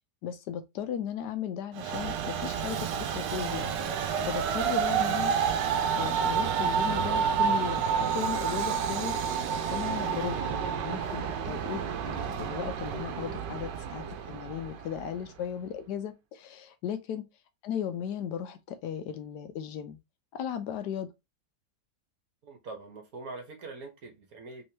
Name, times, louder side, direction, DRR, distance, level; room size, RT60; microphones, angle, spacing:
voice 1, 0.2-3.7 4.3-5.3 6.0-9.1 9.7-17.3 17.6-20.0 20.3-21.1, left 9 dB, 75° left, 1.2 m, -36 dB
Train, 1.7-15.2, right 7 dB, 85° right, 1.3 m, -29 dB
voice 2, 22.4-24.6, right 3 dB, 60° right, 1.4 m, -43 dB
3.5 x 3.2 x 2.8 m
omnidirectional pair, 1.8 m